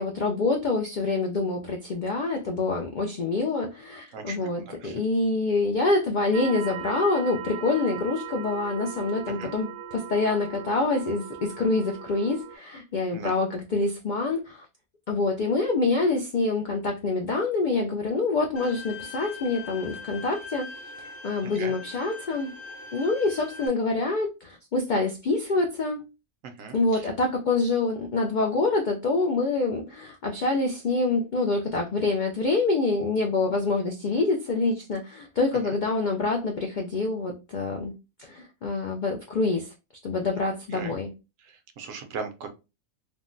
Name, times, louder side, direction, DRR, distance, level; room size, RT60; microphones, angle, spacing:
voice 1, 0.0-14.6 15.1-20.7 21.0-22.5 22.9-26.0 26.7-37.9 38.2-39.7 40.0-41.1, left 3 dB, 70° left, 0.4 m, -26 dB
voice 2, 4.1-5.0 9.3-9.6 13.1-13.4 21.4-21.7 26.4-27.1 35.6-35.8 40.7-41.0 41.4-42.5, right 5 dB, 80° right, 1.0 m, -39 dB
sound 1, 6.3-12.6, right 9 dB, 65° right, 0.7 m, -39 dB
Bowed string instrument, 18.6-23.7, left 4 dB, 50° left, 1.0 m, -41 dB
3.5 x 2.1 x 2.5 m
omnidirectional pair, 1.3 m